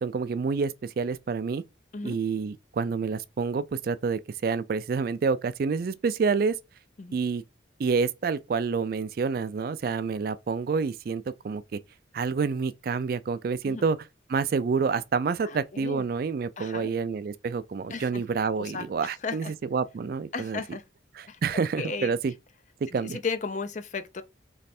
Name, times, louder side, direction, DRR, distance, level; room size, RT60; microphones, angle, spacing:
voice 1, 0.0-1.6 2.0-6.6 7.1-7.4 7.8-11.8 12.1-14.0 14.3-20.6 21.1-22.3 22.9-23.2, right 5 dB, 50° right, 0.3 m, -28 dB
voice 2, 15.4-16.0 16.6-16.9 17.9-18.2 18.6-18.8 19.2-19.5 20.3-20.8 21.3-21.4 21.8-22.1 22.9-24.2, left 4 dB, 40° left, 0.4 m, -34 dB
3.2 x 3.2 x 4.2 m
head